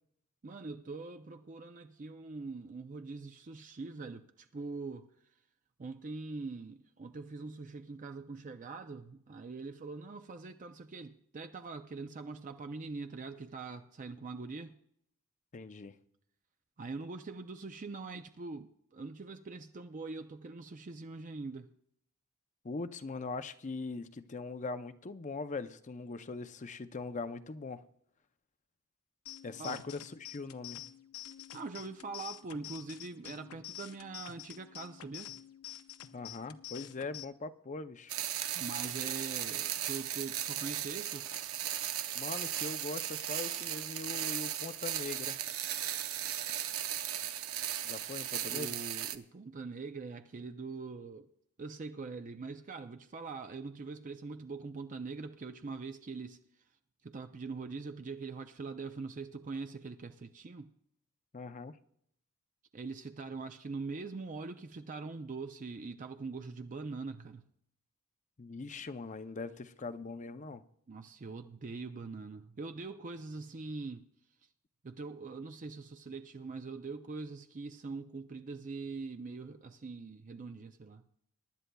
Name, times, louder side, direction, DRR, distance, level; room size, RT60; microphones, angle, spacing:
voice 1, 0.4-5.1 5.8-14.7 16.8-21.7 29.6-29.8 31.5-35.3 38.6-41.3 48.4-51.3 51.6-56.4 57.0-60.7 62.7-67.4 70.9-74.0 74.8-81.0, right 4 dB, 35° right, 0.5 m, -43 dB
voice 2, 15.5-15.9 22.6-27.8 29.4-30.8 36.1-38.1 42.1-45.4 47.8-48.8 61.3-61.8 68.4-70.6, left 3 dB, 35° left, 0.5 m, -41 dB
sound 1, 29.3-37.3, left 12 dB, 85° left, 0.7 m, -48 dB
sound 2, 38.1-49.2, right 11 dB, 70° right, 0.7 m, -36 dB
23.0 x 11.0 x 2.3 m
head